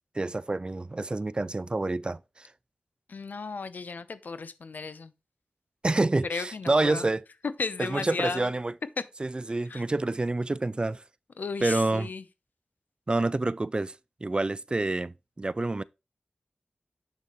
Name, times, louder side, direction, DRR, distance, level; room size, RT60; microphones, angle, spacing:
voice 1, 0.2-2.2 5.8-7.2 7.8-8.7 9.2-11.0 11.6-12.1 13.1-13.9 14.2-15.8, right 2 dB, 35° right, 0.4 m, -27 dB
voice 2, 3.1-5.1 6.3-7.1 7.6-8.5 9.7-9.8 11.4-12.2, left 4 dB, 80° left, 0.7 m, -35 dB
7.2 x 6.5 x 3.0 m
wide cardioid pair, 70°, 3 cm